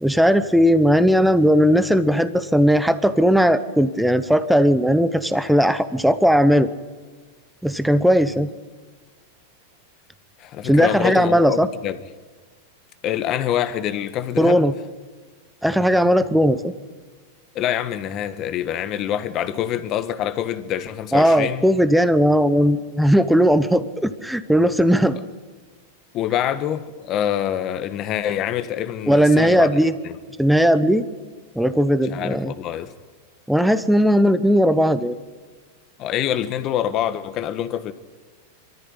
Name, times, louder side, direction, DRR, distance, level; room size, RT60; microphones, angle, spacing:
voice 1, 0.0-6.7 7.6-8.5 10.6-11.7 14.4-14.7 15.6-16.7 21.1-25.2 29.1-29.9 30.4-31.0 31.5-32.5 33.5-35.2, equal, ahead, 0.9 m, -17 dB
voice 2, 10.4-12.0 13.0-14.7 17.5-21.6 26.1-29.7 30.0-30.2 32.1-32.9 36.0-37.9, left 10 dB, 40° left, 1.5 m, -25 dB
23.5 x 14.0 x 9.9 m
supercardioid pair, 130°, 0 cm